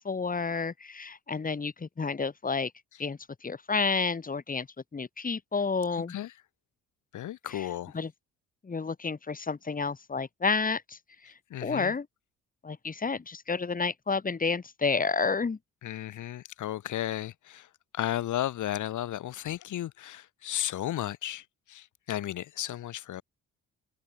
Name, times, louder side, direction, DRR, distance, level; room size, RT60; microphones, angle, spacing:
voice 1, 0.0-2.7 3.0-4.7 4.9-6.1 7.5-7.7 7.9-8.1 8.6-11.0 11.2-11.3 11.6-12.1 12.6-15.6, left 4 dB, 30° left, 2.5 m, -30 dB
voice 2, 7.1-8.0 11.5-11.9 15.8-17.7 17.9-23.2, left 12 dB, 75° left, 6.1 m, -34 dB
cardioid pair, 90°, 30 cm